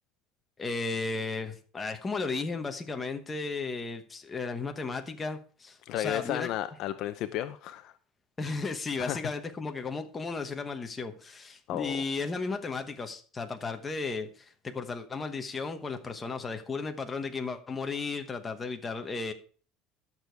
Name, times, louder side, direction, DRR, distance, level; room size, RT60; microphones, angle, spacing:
voice 1, 0.6-6.5 8.4-19.3, left 4 dB, 15° left, 6 dB, 1.1 m, -34 dB
voice 2, 5.9-7.9 9.0-9.2 11.7-12.0, left 13 dB, 50° left, 11 dB, 0.6 m, -33 dB
12.0 x 6.8 x 4.6 m, 0.41 s
cardioid pair, 165°, 0 cm